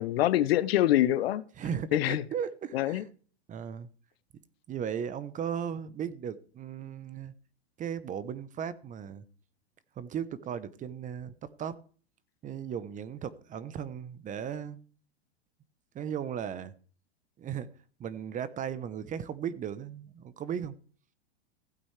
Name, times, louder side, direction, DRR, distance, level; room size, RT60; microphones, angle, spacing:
voice 1, 0.0-1.4 1.9-2.2 2.7-3.0, left 13 dB, 65° left, 0.9 m, -25 dB
voice 2, 1.6-3.0 3.5-3.9 4.7-7.3 7.8-9.2 10.0-11.3 11.6-11.8 12.4-14.8 15.9-16.7 17.4-17.7 18.0-20.7, right 8 dB, 25° right, 0.9 m, -36 dB
16.0 x 8.8 x 3.3 m
hypercardioid pair, 120°, 32 cm